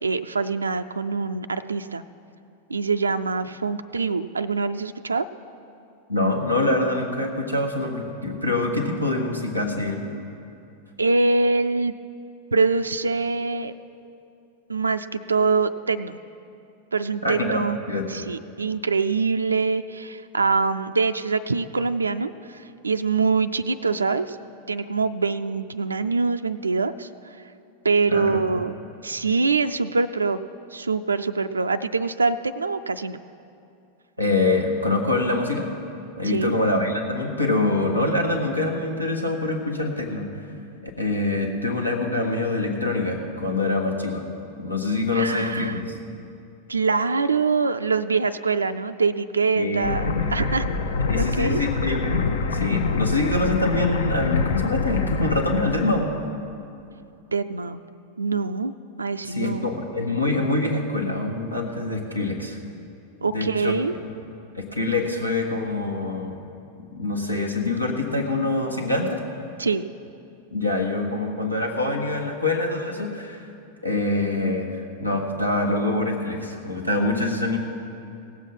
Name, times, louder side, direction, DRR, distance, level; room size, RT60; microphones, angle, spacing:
voice 1, 0.0-2.0 2.7-5.3 11.0-11.9 12.5-13.7 14.7-16.2 16.9-17.8 18.1-24.4 24.7-27.4 27.8-28.8 29.0-30.4 30.7-33.2 36.2-36.5 45.1-45.8 46.7-50.7 51.2-51.6 57.3-57.8 58.2-58.7 59.0-59.6 63.2-63.9 69.6-69.8, right 4 dB, 75° right, 9 dB, 0.3 m, -24 dB
voice 2, 6.1-10.0 17.2-17.6 17.9-18.0 28.1-28.6 34.2-35.7 36.2-40.3 40.8-44.2 44.6-45.8 49.5-49.9 51.1-56.1 59.2-62.6 63.3-63.7 64.5-66.4 66.9-69.2 70.5-73.4 73.8-77.6, left 2 dB, 85° left, 1 dB, 1.4 m, -25 dB
sound 1, 49.8-56.2, left 4 dB, 65° left, 0.7 m, -25 dB
17.0 x 7.4 x 5.5 m, 2.6 s
figure-of-eight pair, 90°, 0 cm